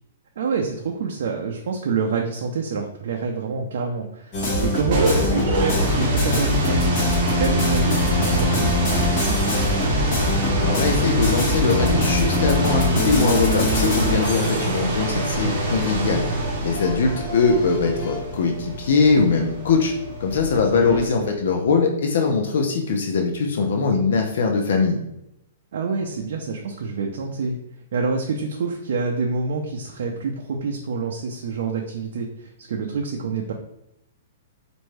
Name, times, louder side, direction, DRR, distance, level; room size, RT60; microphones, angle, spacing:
voice 1, 0.4-9.7 14.5-14.6 20.5-21.3 25.7-27.6 27.9-33.5, right 4 dB, 60° right, 1 dB, 0.5 m, -27 dB
sound 1, 4.3-18.2, left 2 dB, 30° left, 1.1 m, -24 dB
sound 2, 4.6-21.3, right 2 dB, 35° right, 0.9 m, -26 dB
voice 2, 10.6-16.2 16.6-19.9 20.2-25.0, left 4 dB, 60° left, 3 dB, 0.5 m, -21 dB
4.3 x 2.6 x 3.2 m, 0.83 s
hypercardioid pair, 170°, 0 cm